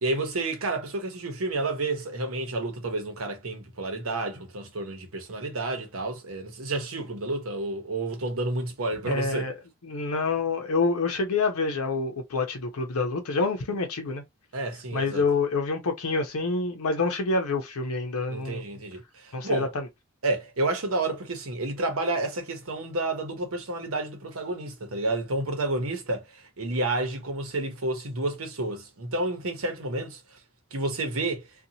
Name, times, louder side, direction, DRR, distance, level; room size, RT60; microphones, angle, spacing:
voice 1, 0.0-9.5 14.5-15.2 18.3-19.7 20.2-30.4 30.7-31.5, right 2 dB, 80° right, 0.9 m, -30 dB
voice 2, 9.1-9.5 9.8-14.2 14.9-18.6 19.3-19.9, left 3 dB, 90° left, 0.6 m, -27 dB
2.7 x 2.3 x 2.7 m
head